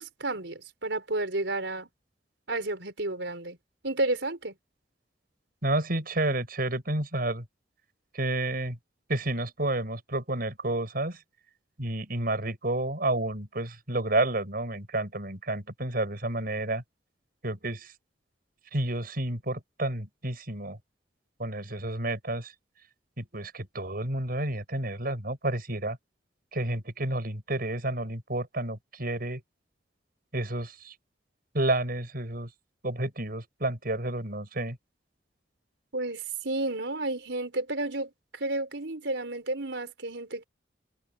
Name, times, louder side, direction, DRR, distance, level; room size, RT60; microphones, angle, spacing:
voice 1, 0.0-1.9 2.5-3.6 3.8-4.5 35.9-40.4, right 2 dB, 85° right, 4.5 m, -31 dB
voice 2, 5.6-7.4 8.1-8.8 9.1-11.2 11.8-16.8 17.4-17.9 18.7-20.8 21.4-22.5 23.2-26.0 26.5-29.4 30.3-30.9 31.5-32.5 32.8-34.8, right 2 dB, 55° right, 7.5 m, -30 dB
head